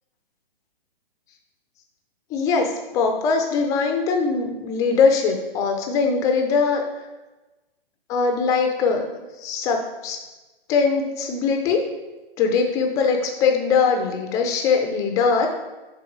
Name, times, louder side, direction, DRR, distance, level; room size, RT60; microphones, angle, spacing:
voice 1, 2.3-6.8 8.1-9.1 9.4-10.2 10.7-11.8 12.4-15.5, left 5 dB, 10° left, 3 dB, 0.4 m, -21 dB
6.3 x 3.6 x 4.6 m, 1.1 s
figure-of-eight pair, 125°, 30 cm